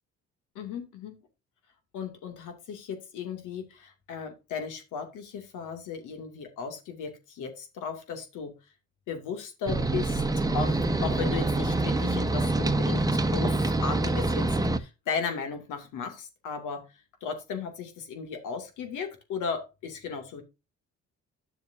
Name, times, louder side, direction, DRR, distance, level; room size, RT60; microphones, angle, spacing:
voice 1, 0.5-1.2 1.9-8.5 9.1-14.5 14.8-16.8 17.2-20.4, left 6 dB, 90° left, 5 dB, 2.4 m, -36 dB
sound 1, 9.7-14.8, right 2 dB, 10° right, 0.9 m, -26 dB
10.5 x 7.1 x 2.6 m, 0.26 s
cardioid pair, 90°, 30 cm